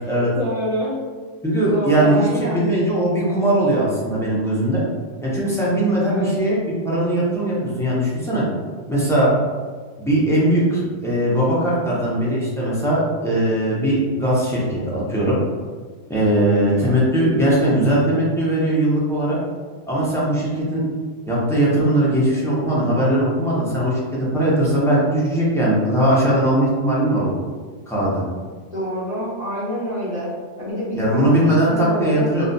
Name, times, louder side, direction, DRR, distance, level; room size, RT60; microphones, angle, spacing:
voice 1, 0.1-1.0 1.7-2.6 6.0-6.3 16.5-17.0 28.7-30.3 30.6-32.3, equal, 30° left, -11 dB, 1.0 m, -26 dB
voice 2, 1.4-4.8 5.2-6.6 6.8-8.4 8.9-9.3 10.0-15.4 16.1-19.4 19.9-20.8 21.3-27.3 27.9-28.2 30.9-32.4, right 1 dB, 5° left, -8 dB, 0.4 m, -19 dB
2.4 x 2.2 x 3.8 m, 1.5 s
omnidirectional pair, 1.3 m